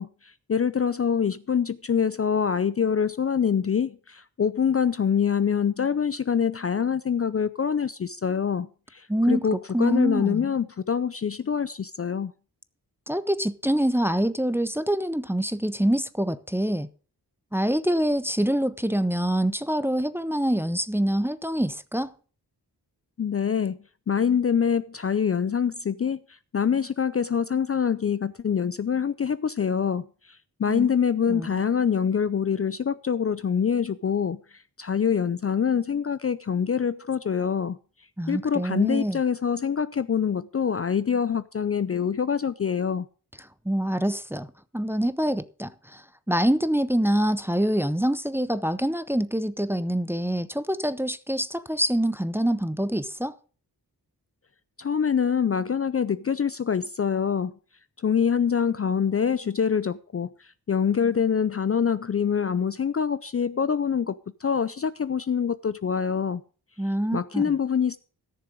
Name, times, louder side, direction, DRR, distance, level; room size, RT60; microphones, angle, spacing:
voice 1, 0.0-12.3 23.2-23.8 24.1-37.8 38.3-43.1 54.8-57.5 58.0-66.4 67.1-68.0, left 7 dB, 35° left, 0.4 m, -25 dB
voice 2, 9.1-10.5 13.1-16.9 17.5-22.1 30.7-30.9 31.3-31.5 38.2-39.2 43.7-44.5 44.7-53.4 66.8-67.5, right 1 dB, 5° right, 0.6 m, -25 dB
14.0 x 6.8 x 5.0 m
wide cardioid pair, 70°, 39 cm